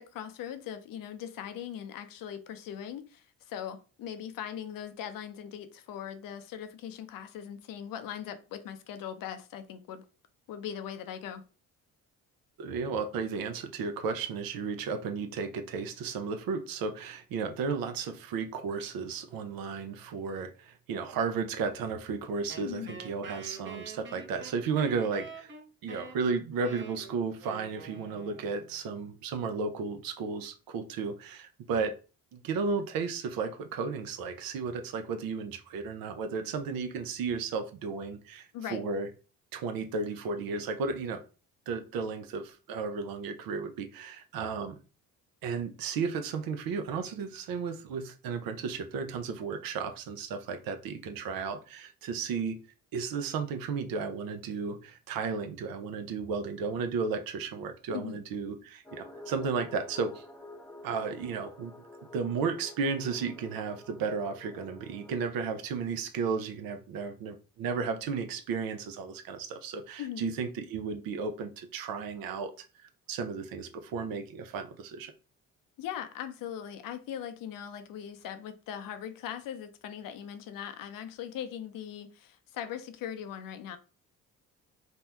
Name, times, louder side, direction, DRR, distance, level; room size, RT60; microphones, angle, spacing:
voice 1, 0.0-10.0 10.5-11.4 22.6-22.9 38.5-38.9 57.9-58.2 70.0-70.3 75.8-83.8, left 9 dB, 60° left, 0.6 m, -40 dB
voice 2, 12.6-25.5 25.8-31.9 32.3-39.1 39.5-41.2 41.7-44.8 45.4-52.6 52.9-60.2 60.8-61.7 62.1-72.5 72.8-75.1, right 5 dB, 65° right, 0.6 m, -34 dB
Wind instrument woodwind instrument, 22.5-28.8, right 4 dB, 30° right, 0.7 m, -46 dB
sound 1, 58.8-65.3, left 2 dB, 5° left, 0.7 m, -49 dB
2.6 x 2.2 x 3.3 m
supercardioid pair, 65°, 37 cm